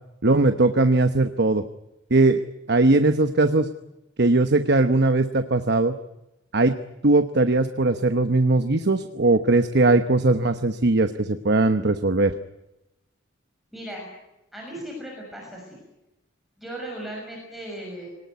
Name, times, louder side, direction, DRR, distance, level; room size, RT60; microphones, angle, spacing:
voice 1, 0.2-1.6 2.1-2.4 2.7-3.7 4.2-6.0 6.5-6.7 7.0-12.3, right 2 dB, 55° right, 9 dB, 1.0 m, -19 dB
voice 2, 13.7-14.1 14.5-15.8 16.6-18.1, right 1 dB, ahead, -2 dB, 6.4 m, -37 dB
24.5 x 19.0 x 9.5 m, 0.93 s
head